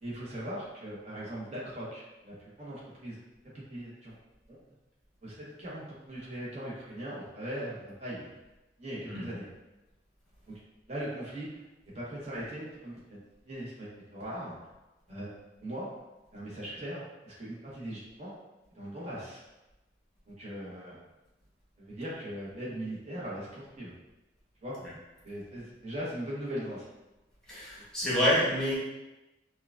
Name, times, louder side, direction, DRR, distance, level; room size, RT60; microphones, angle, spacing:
voice 1, 0.0-3.2 3.7-4.1 4.5-4.6 5.2-8.3 8.8-9.4 10.9-11.6 11.9-13.2 13.4-14.5 15.1-15.3 15.6-15.9 16.3-18.3 18.8-19.4 20.3-21.0 21.8-23.9 24.6-24.8 25.2-26.9, right 1 dB, 35° right, -7 dB, 1.1 m, -39 dB
voice 2, 27.5-28.8, equal, 5° left, -8 dB, 1.1 m, -28 dB
5.7 x 2.4 x 2.5 m, 1.0 s
head